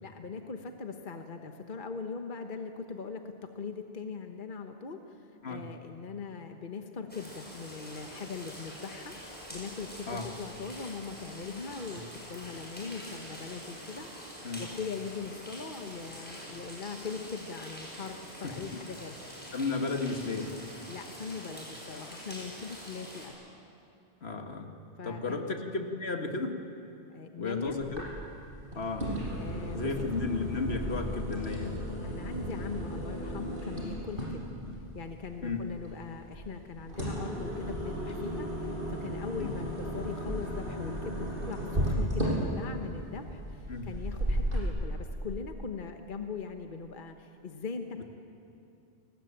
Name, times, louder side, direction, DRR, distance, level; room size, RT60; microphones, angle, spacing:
voice 1, 0.0-19.2 20.9-23.3 25.0-25.4 27.1-27.8 29.4-29.9 32.0-34.5 34.9-48.1, left 5 dB, 50° left, 5 dB, 1.3 m, -40 dB
sound 1, 7.1-23.3, equal, 10° left, 7.2 m, -45 dB
voice 2, 18.4-18.8 19.5-20.6 24.2-24.7 25.0-26.6 27.4-28.0 28.7-29.1 29.7-31.9 34.6-34.7 35.4-35.6 39.4-39.5 43.7-43.8, left 3 dB, 70° left, 4 dB, 2.1 m, -33 dB
sound 2, 27.8-44.6, equal, 50° right, 7.5 m, -35 dB
29.0 x 20.0 x 8.9 m, 2.7 s
omnidirectional pair, 1.1 m